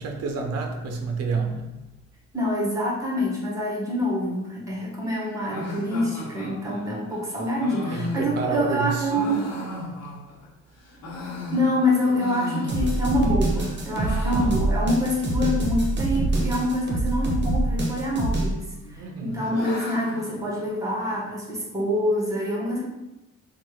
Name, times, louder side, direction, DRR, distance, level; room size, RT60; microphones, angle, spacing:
voice 1, 0.0-1.8 7.9-9.2 13.9-14.4 19.0-19.5, right 4 dB, 55° right, 3 dB, 0.6 m, -29 dB
voice 2, 2.3-9.5 11.5-22.9, left 1 dB, 10° right, -5 dB, 1.3 m, -26 dB
sound 1, 5.5-10.5 10.8-13.2 13.5-15.1 15.3-15.4 15.6-15.7 16.4-16.8 17.8-18.4 18.8-21.2, left 1 dB, 60° left, 1.1 m, -35 dB
sound 2, 12.7-18.5, right 2 dB, 35° right, 0.9 m, -25 dB
3.3 x 2.4 x 3.1 m, 0.97 s
cardioid pair, 90°, 30 cm